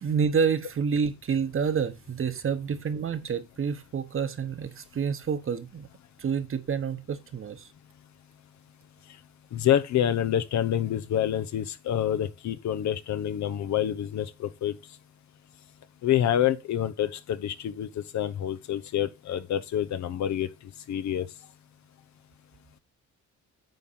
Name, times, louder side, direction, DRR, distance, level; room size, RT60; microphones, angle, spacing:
voice 1, 0.0-5.9 6.2-7.7, right 6 dB, 45° right, 1.2 m, -28 dB
voice 2, 9.5-14.8 16.0-20.5 20.9-21.3, left 10 dB, 65° left, 0.9 m, -27 dB
9.1 x 3.7 x 5.7 m
cardioid pair, 90°, 30 cm